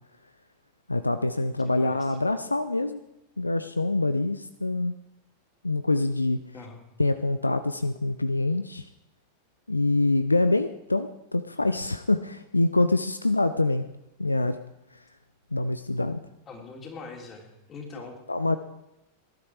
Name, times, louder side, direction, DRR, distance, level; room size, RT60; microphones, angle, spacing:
voice 1, 0.9-3.0 3.4-4.9 5.6-6.4 7.0-8.9 9.7-13.8 14.2-14.6 14.9-15.0 15.5-16.2 17.9-18.6, left 2 dB, 80° left, 12 dB, 0.6 m, -25 dB
voice 2, 1.6-2.0 6.5-6.8 16.5-18.2, left 4 dB, 25° left, 2 dB, 3.7 m, -42 dB
19.0 x 12.0 x 4.8 m, 0.92 s
figure-of-eight pair, 90°, 0 cm